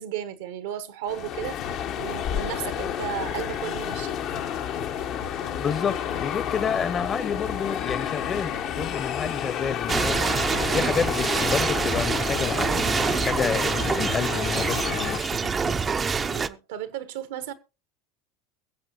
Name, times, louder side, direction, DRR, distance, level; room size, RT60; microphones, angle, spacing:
voice 1, 0.0-4.2 10.6-10.9 16.2-17.5, right 10 dB, 70° right, 1.2 m, -34 dB
sound 1, 1.1-15.2, left 9 dB, 55° left, 1.3 m, -31 dB
sound 2, 1.6-15.9, left 6 dB, 85° left, 2.0 m, -42 dB
voice 2, 5.6-10.4 10.7-15.4, left 6 dB, 35° left, 1.2 m, -29 dB
sound 3, 9.9-16.5, right 5 dB, 25° right, 0.7 m, -26 dB
22.5 x 7.6 x 2.9 m
hypercardioid pair, 75°, 0 cm